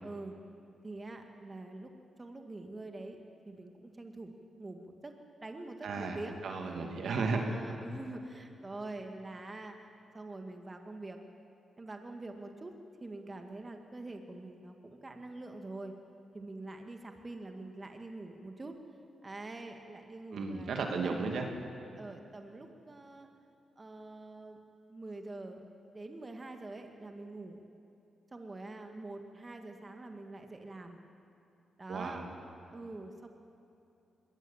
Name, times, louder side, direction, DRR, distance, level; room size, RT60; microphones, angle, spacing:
voice 1, 0.0-0.4 0.8-1.9 2.2-3.2 3.5-4.3 4.6-5.1 5.4-6.7 7.1-9.9 10.1-11.2 11.8-12.7 13.0-16.0 16.3-18.7 19.2-20.7 21.0-21.5 22.0-23.3 23.8-24.6 24.9-25.6 25.9-27.6 28.3-31.0 31.8-32.2 32.7-33.3, right 2 dB, 30° right, 4 dB, 2.0 m, -45 dB
voice 2, 5.8-6.2 6.4-7.4 20.3-21.5 31.9-32.3, right 4 dB, 70° right, 3 dB, 2.3 m, -34 dB
21.5 x 18.0 x 7.3 m, 2.7 s
supercardioid pair, 55°, 0 cm